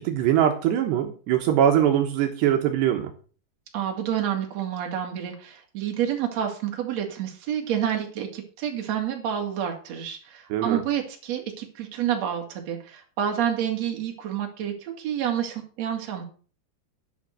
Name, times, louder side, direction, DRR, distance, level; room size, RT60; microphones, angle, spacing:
voice 1, 0.0-3.1 10.5-10.8, right 10 dB, 75° right, 4 dB, 3.2 m, -22 dB
voice 2, 3.7-16.2, right 9 dB, 45° right, 1 dB, 3.0 m, -29 dB
11.5 x 6.3 x 6.5 m, 0.40 s
omnidirectional pair, 5.1 m